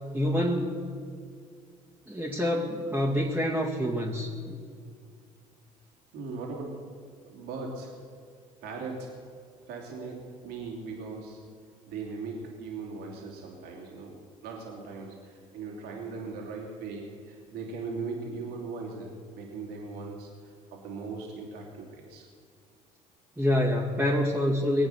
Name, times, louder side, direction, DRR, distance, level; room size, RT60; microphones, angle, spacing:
voice 1, 0.1-0.8 2.1-4.6 23.4-24.9, left 1 dB, 10° right, -5 dB, 2.4 m, -27 dB
voice 2, 6.1-6.9 7.2-8.0 8.6-9.3 9.7-11.5 11.9-19.1 19.4-22.3, right 4 dB, 60° right, -1 dB, 3.0 m, -39 dB
22.5 x 8.7 x 6.6 m, 2.1 s
figure-of-eight pair, 55°, 18 cm